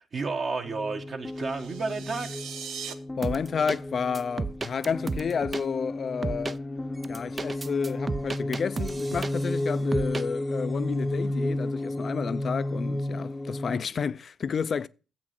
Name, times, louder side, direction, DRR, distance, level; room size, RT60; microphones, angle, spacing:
voice 1, 0.1-2.3, right 4 dB, 45° right, 1.2 m, -31 dB
sound 1, 0.6-13.8, left 1 dB, 10° left, 0.8 m, -32 dB
sound 2, 1.3-2.9, right 7 dB, 85° right, 0.9 m, -40 dB
voice 2, 3.2-6.6 7.1-14.9, left 6 dB, 45° left, 0.4 m, -31 dB
sound 3, 3.2-3.8 4.1-5.6 6.2-6.6 7.0-9.6 9.9-10.2, right 4 dB, 30° right, 0.4 m, -33 dB
7.5 x 5.9 x 7.7 m
cardioid pair, 90°, 0 cm